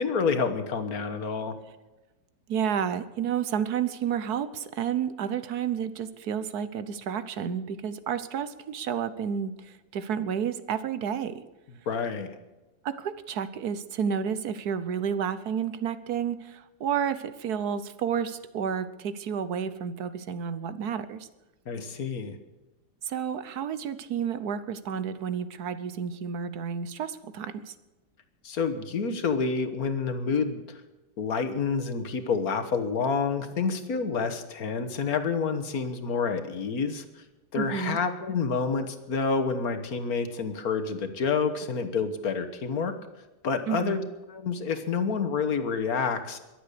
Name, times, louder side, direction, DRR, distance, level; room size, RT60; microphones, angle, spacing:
voice 1, 0.0-1.6 11.9-12.4 21.7-22.4 28.4-30.8 31.2-37.2 37.5-43.0 43.4-44.0 44.3-46.4, left 5 dB, 60° left, 9 dB, 1.7 m, -28 dB
voice 2, 2.5-11.4 12.8-21.3 23.0-27.7 37.6-38.0 43.7-44.1, right 7 dB, 65° right, 13 dB, 1.4 m, -31 dB
22.5 x 8.1 x 6.7 m, 1.1 s
omnidirectional pair, 1.8 m